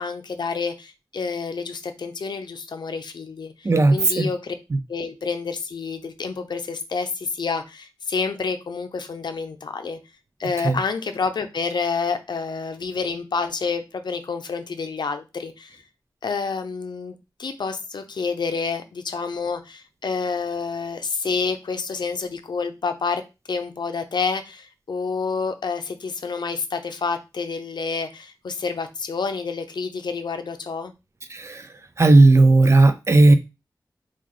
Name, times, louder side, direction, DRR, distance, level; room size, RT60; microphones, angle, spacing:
voice 1, 0.0-4.5 4.9-10.0 10.4-15.8 16.2-23.2 23.5-30.9, left 5 dB, 80° left, 0.5 m, -28 dB
voice 2, 3.6-4.3 10.6-10.8 31.3-31.6 32.0-33.4, right 2 dB, 40° right, 0.5 m, -15 dB
3.1 x 2.4 x 3.7 m
wide cardioid pair, 80°, 7 cm